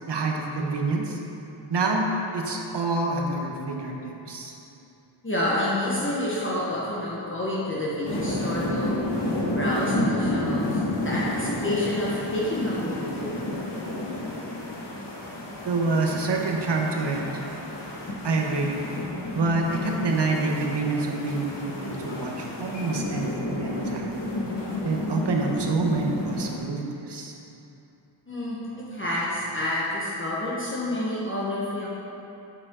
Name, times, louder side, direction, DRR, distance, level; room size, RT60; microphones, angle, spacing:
voice 1, 0.1-1.2 1.7-4.5 15.6-17.4 18.2-18.8 19.3-24.2 24.8-27.3, right 3 dB, 65° right, 1 dB, 1.0 m, -27 dB
voice 2, 5.2-9.0 9.5-13.4 28.3-31.9, left 1 dB, 25° left, -8 dB, 1.1 m, -28 dB
sound 1, 8.0-26.6, left 1 dB, 65° left, 1.6 m, -31 dB
7.4 x 6.8 x 3.7 m, 2.9 s
wide cardioid pair, 120°, 44 cm